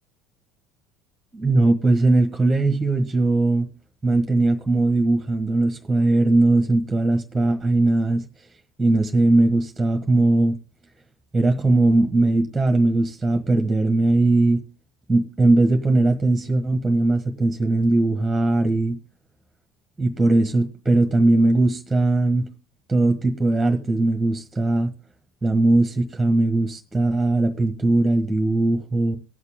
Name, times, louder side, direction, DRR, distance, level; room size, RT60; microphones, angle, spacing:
voice 1, 1.3-3.7 4.0-8.2 8.8-10.5 11.3-14.6 15.1-19.0 20.0-22.5 22.9-24.9 25.4-29.2, right 2 dB, 10° right, 6 dB, 1.5 m, -19 dB
19.0 x 6.5 x 3.7 m, 0.31 s
figure-of-eight pair, 70°, 0 cm